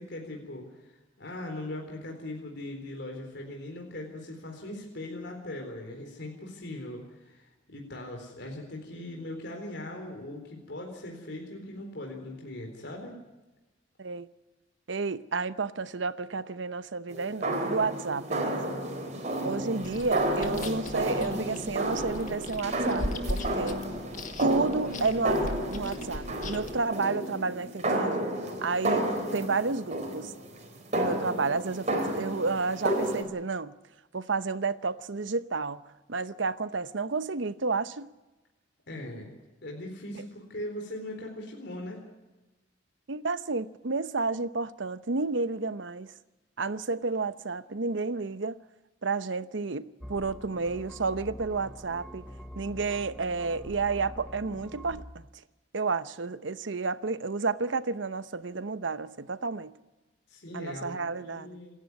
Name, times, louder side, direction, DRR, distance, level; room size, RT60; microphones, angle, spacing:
voice 1, 0.0-13.2 38.9-39.4 39.6-42.0 60.3-61.8, left 1 dB, 60° left, 4.1 m, -40 dB
voice 2, 14.9-18.8 19.4-23.8 24.4-25.5 25.7-28.3 28.6-30.3 30.9-33.7 34.1-35.8 36.1-38.1 43.1-46.1 46.6-48.6 49.0-52.2 52.6-55.3 55.7-59.7 60.5-61.6, right 4 dB, 75° right, 0.8 m, -31 dB
sound 1, 17.1-33.2, right 1 dB, 40° right, 4.0 m, -31 dB
Chewing mastication, 19.8-26.8, left 1 dB, 40° left, 2.0 m, -39 dB
sound 2, 50.0-55.0, equal, 5° left, 1.1 m, -45 dB
27.5 x 11.5 x 9.7 m
head